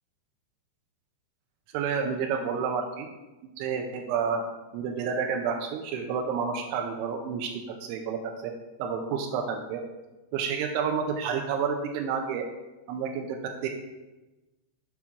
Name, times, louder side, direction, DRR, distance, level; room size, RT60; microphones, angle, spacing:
voice 1, 1.7-3.1 3.6-4.4 4.7-8.5 8.8-9.8 10.3-12.5 12.9-13.7, right 6 dB, 85° right, 3 dB, 3.0 m, -30 dB
8.6 x 3.6 x 5.9 m, 1.1 s
omnidirectional pair, 5.3 m